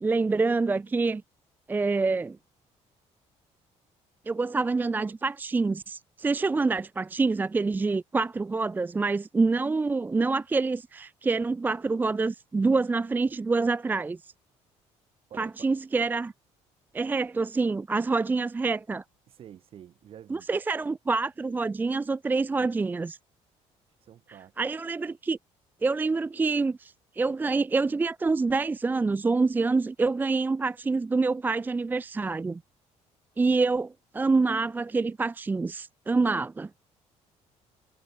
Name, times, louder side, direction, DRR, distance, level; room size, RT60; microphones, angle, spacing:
voice 1, 0.0-1.2 1.7-2.4 4.3-14.3 15.4-16.3 16.9-19.0 20.3-23.2 24.6-25.4 25.8-32.6 33.4-36.7, right 3 dB, 15° right, 0.6 m, -26 dB
voice 2, 15.3-15.7 19.3-20.5 24.0-24.5, right 10 dB, 50° right, 7.0 m, -48 dB
cardioid pair, 150°, 12 cm